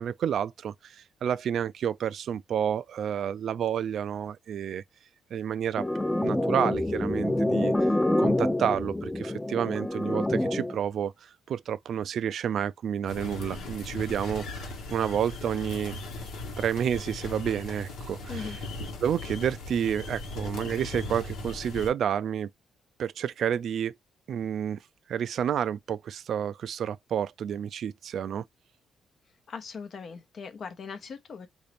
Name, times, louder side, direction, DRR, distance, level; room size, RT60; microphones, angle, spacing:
voice 1, 0.0-4.8 5.3-5.8 6.2-7.7 8.2-14.6 14.9-15.9 16.6-18.6 19.0-22.5 23.0-24.0 24.3-24.8 25.1-28.4, right 9 dB, 65° right, 0.3 m, -30 dB
sound 1, 5.8-10.8, left 1 dB, 10° left, 0.5 m, -27 dB
sound 2, 13.1-21.9, left 2 dB, 80° left, 1.3 m, -38 dB
voice 2, 29.5-31.5, left 5 dB, 55° left, 0.8 m, -39 dB
3.8 x 2.6 x 3.4 m
cardioid pair, 90°, 0 cm